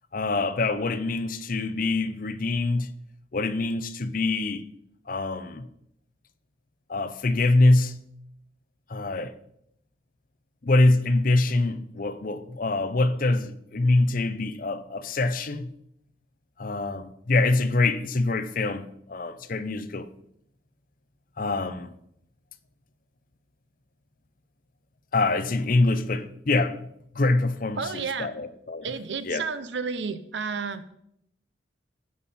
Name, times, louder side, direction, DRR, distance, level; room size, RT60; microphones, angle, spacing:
voice 1, 0.1-2.9 3.3-4.6 5.1-5.6 6.9-8.0 8.9-9.3 10.6-15.7 16.6-20.1 21.4-21.9 25.1-26.9 27.1-27.8 28.2-28.8 29.3-29.4, left 2 dB, 50° left, 0.7 m, -24 dB
voice 2, 27.8-28.3 28.8-30.9, right 5 dB, 75° right, 0.7 m, -31 dB
15.5 x 5.5 x 4.2 m
head